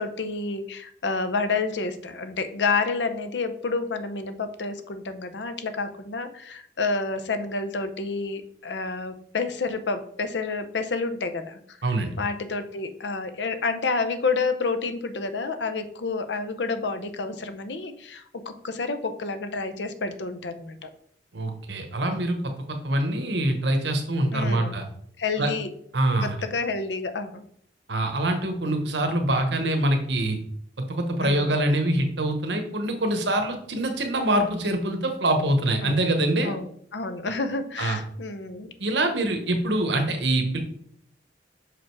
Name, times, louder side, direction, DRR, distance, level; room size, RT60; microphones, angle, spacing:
voice 1, 0.0-11.8 12.2-20.9 24.3-24.8 25.2-25.7 26.2-27.4 31.2-31.6 35.8-36.1 36.4-38.7, left 4 dB, 80° left, 10 dB, 0.7 m, -29 dB
voice 2, 11.8-12.1 21.3-22.4 22.7-24.8 25.4-25.5 25.9-26.3 27.9-30.4 30.8-36.5 37.8-38.0 38.8-40.6, right 1 dB, 80° right, 5 dB, 1.1 m, -24 dB
5.9 x 5.0 x 4.6 m, 0.65 s
head